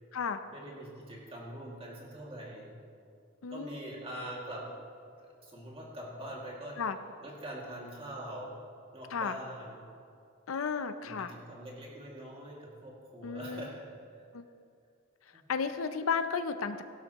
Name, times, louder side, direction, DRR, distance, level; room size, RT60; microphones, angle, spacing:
voice 1, 0.5-2.7 3.5-4.7 5.2-6.8 7.2-8.6 8.9-9.8 11.0-13.9 15.3-15.4, right 1 dB, 30° right, -3 dB, 2.3 m, -43 dB
voice 2, 10.5-11.3 13.2-13.7 14.3-14.4 15.5-16.8, left 5 dB, 80° left, 10 dB, 0.6 m, -33 dB
17.0 x 11.5 x 3.0 m, 2.4 s
head